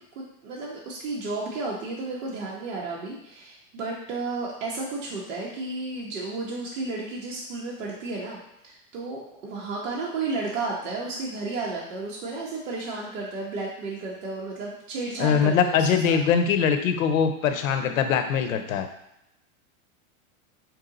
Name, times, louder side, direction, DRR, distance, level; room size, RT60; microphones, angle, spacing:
voice 1, 0.1-16.2, right 3 dB, 70° right, -4 dB, 1.1 m, -33 dB
voice 2, 15.2-18.9, left 7 dB, 80° left, 7 dB, 0.7 m, -22 dB
4.5 x 2.8 x 3.8 m, 0.83 s
supercardioid pair, 170°, 40 cm